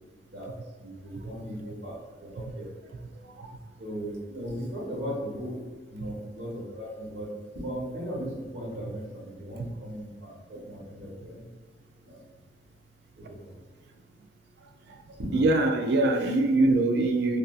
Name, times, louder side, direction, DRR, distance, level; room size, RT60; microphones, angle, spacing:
voice 1, 0.8-1.9 2.2-2.7 3.8-5.6 5.9-7.3 7.5-10.3 10.6-11.4 12.1-12.2 13.3-13.5 15.2-15.3, equal, 90° right, -4 dB, 1.0 m, -37 dB
voice 2, 15.3-17.4, right 2 dB, 60° right, 6 dB, 0.3 m, -23 dB
3.2 x 2.5 x 2.4 m, 1.4 s
head